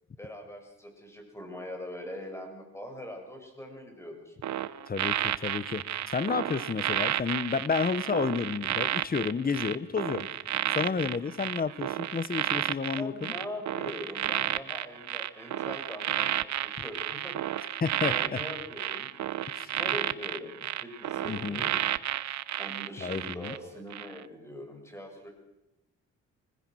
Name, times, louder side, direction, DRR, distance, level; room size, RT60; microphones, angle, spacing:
voice 1, 0.2-4.4 13.0-17.4 17.7-19.1 19.6-21.8 22.6-25.3, left 1 dB, 10° left, 3 dB, 7.4 m, -42 dB
sound 1, 4.4-23.6 23.9-24.2, right 12 dB, 65° right, 1.0 m, -32 dB
voice 2, 4.9-10.3 10.7-13.3 17.8-18.4 19.5-19.8 21.2-21.6 23.0-23.5, left 5 dB, 30° left, 16 dB, 1.2 m, -31 dB
25.0 x 21.0 x 6.4 m, 0.92 s
cardioid pair, 90°, 30 cm